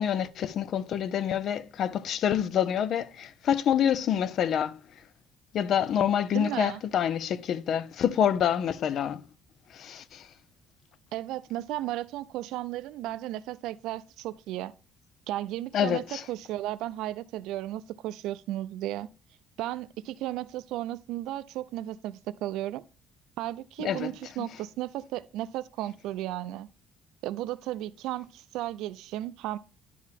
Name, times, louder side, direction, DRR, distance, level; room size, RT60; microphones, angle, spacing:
voice 1, 0.0-4.8 5.5-9.2 9.7-10.3 15.7-16.2 23.8-24.1, left 9 dB, 50° left, 0.4 m, -27 dB
voice 2, 6.3-6.8 11.1-14.7 15.3-19.1 19.6-22.8 23.4-26.7 27.2-29.6, right 14 dB, 80° right, 0.4 m, -34 dB
11.0 x 4.7 x 3.5 m
cardioid pair, 145°, 0 cm